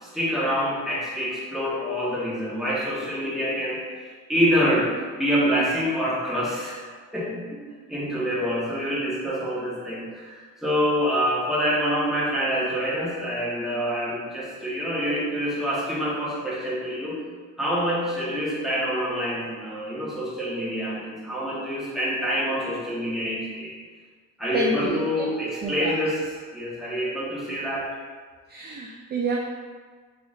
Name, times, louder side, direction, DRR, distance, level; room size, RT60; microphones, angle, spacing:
voice 1, 0.0-6.8 7.1-7.6 7.9-17.2 17.6-23.7 24.4-27.9, equal, ahead, -9 dB, 1.3 m, -26 dB
voice 2, 24.5-25.3 25.6-26.0 28.5-29.4, right 2 dB, 35° right, -2 dB, 0.4 m, -28 dB
3.8 x 3.3 x 2.5 m, 1.5 s
cardioid pair, 90°, 30 cm